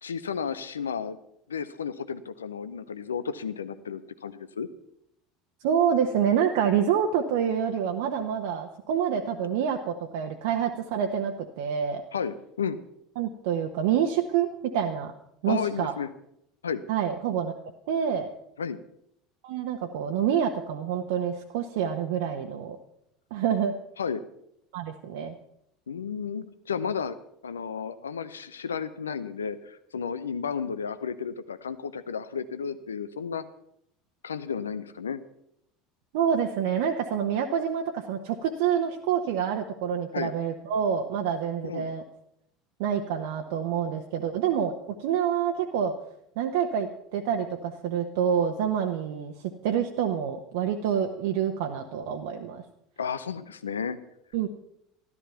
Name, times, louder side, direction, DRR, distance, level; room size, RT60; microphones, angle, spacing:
voice 1, 0.0-1.2 1.5-4.7 12.1-12.8 15.5-16.1 16.6-16.8 18.6-18.8 24.0-24.2 25.9-27.2 27.4-33.4 34.2-35.2 40.1-40.3 41.6-41.9 53.0-54.0, left 6 dB, 80° left, 13 dB, 0.6 m, -32 dB
voice 2, 5.6-12.0 13.2-15.1 15.4-15.9 16.9-17.5 17.9-18.3 19.4-22.8 23.3-23.7 24.7-25.4 36.1-42.0 42.8-44.7 45.0-46.0 46.4-52.6 54.3-54.5, right 8 dB, 60° right, 3 dB, 0.9 m, -27 dB
13.5 x 12.0 x 5.7 m, 0.76 s
figure-of-eight pair, 70°, 0 cm